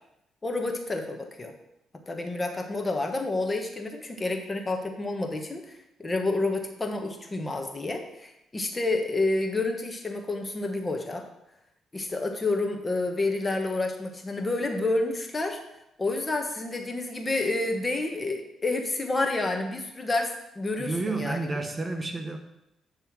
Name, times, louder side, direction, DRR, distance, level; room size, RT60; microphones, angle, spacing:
voice 1, 0.4-1.5 2.1-11.2 11.9-15.6 16.0-21.5, left 2 dB, 25° left, 4 dB, 1.3 m, -29 dB
voice 2, 20.8-22.4, right 3 dB, 30° right, 5 dB, 1.0 m, -30 dB
10.0 x 3.5 x 6.1 m, 0.85 s
cardioid pair, 90°, 0 cm